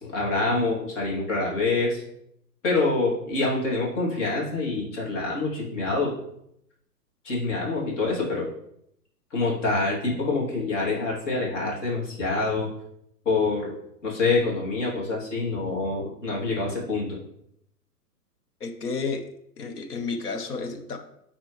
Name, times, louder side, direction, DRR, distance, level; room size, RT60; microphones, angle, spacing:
voice 1, 0.0-2.0 2.6-6.1 7.2-8.5 9.3-12.7 13.2-13.7 14.0-17.1, left 3 dB, 45° left, -3 dB, 2.9 m, -26 dB
voice 2, 18.6-19.3 19.6-21.0, left 4 dB, 65° left, 6 dB, 1.3 m, -31 dB
9.0 x 4.4 x 3.2 m, 0.76 s
figure-of-eight pair, 130°, 50 cm